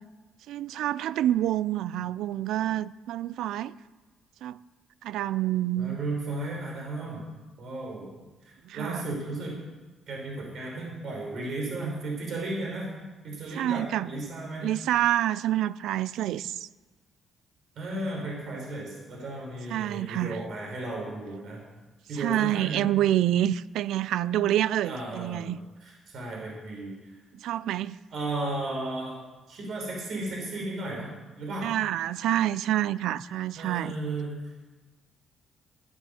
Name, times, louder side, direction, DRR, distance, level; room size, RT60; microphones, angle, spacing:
voice 1, 0.5-3.7 4.4-4.6 5.0-6.0 8.7-9.0 13.5-14.1 14.6-16.7 19.7-20.4 22.2-25.6 27.4-28.0 31.6-34.0, right 12 dB, 85° right, 0.4 m, -27 dB
voice 2, 5.8-8.1 8.4-9.6 10.1-12.9 13.2-14.7 17.8-21.6 22.1-22.9 24.8-26.9 28.1-29.2 29.5-31.1 31.4-31.7 33.5-34.7, right 2 dB, 65° right, 5.4 m, -34 dB
13.5 x 9.4 x 7.3 m
cardioid pair, 90°, 0 cm